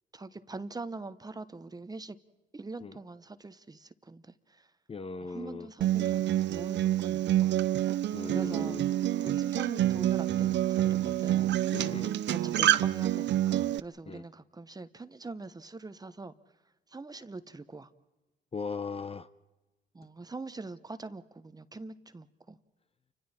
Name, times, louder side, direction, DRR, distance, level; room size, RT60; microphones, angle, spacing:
voice 1, 0.1-2.2 2.5-4.7 5.2-7.5 8.2-8.8 9.2-11.6 12.3-16.3 16.9-17.9 19.9-22.6, right 3 dB, 20° right, 12 dB, 1.0 m, -43 dB
voice 2, 4.9-5.7 8.1-8.8 11.7-12.1 14.1-14.2 18.5-19.3, left 4 dB, 30° left, 13 dB, 0.8 m, -38 dB
Acoustic guitar, 5.8-13.8, right 13 dB, 65° right, 0.6 m, -27 dB
30.0 x 25.5 x 4.3 m, 1.1 s
cardioid pair, 90°, 20 cm